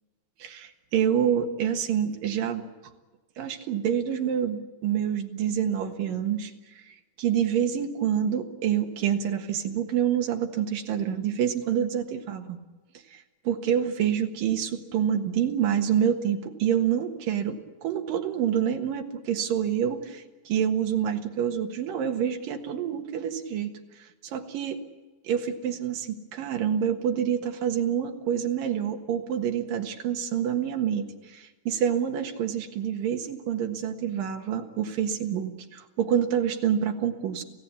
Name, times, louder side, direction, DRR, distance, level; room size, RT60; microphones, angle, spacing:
voice 1, 0.4-2.6 3.4-6.5 6.9-12.6 13.1-24.8 25.2-37.4, right 9 dB, 65° right, 4 dB, 3.1 m, -27 dB
25.5 x 16.5 x 8.6 m, 1.2 s
omnidirectional pair, 4.5 m